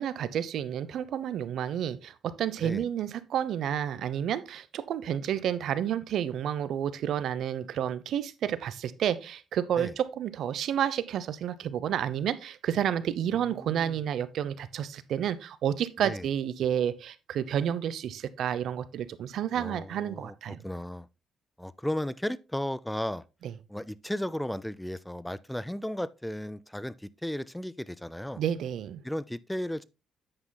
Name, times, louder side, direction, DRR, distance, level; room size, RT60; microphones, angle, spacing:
voice 1, 0.0-20.6 23.4-23.5 28.4-29.0, right 9 dB, 70° right, 0.7 m, -30 dB
voice 2, 13.3-13.9 16.0-16.3 19.5-21.1 21.6-23.2 23.7-28.4 29.0-29.8, left 1 dB, 5° left, 0.4 m, -35 dB
9.4 x 8.9 x 2.2 m
cardioid pair, 90°, 0 cm